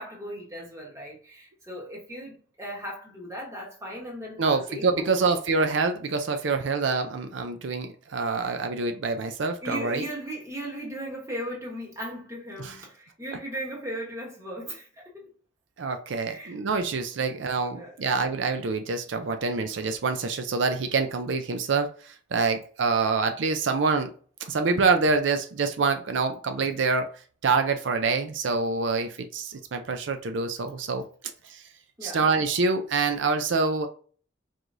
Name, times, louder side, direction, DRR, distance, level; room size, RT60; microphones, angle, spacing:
voice 1, 0.0-5.4 9.6-15.3 16.3-16.6 17.7-17.9 32.0-32.2, equal, 15° right, 1.5 m, -37 dB
voice 2, 4.4-10.0 12.6-12.8 15.8-24.1 24.5-27.1 27.4-31.0 31.5-31.6 32.0-33.9, right 4 dB, 80° right, 0.5 m, -26 dB
4.8 x 3.8 x 2.6 m
head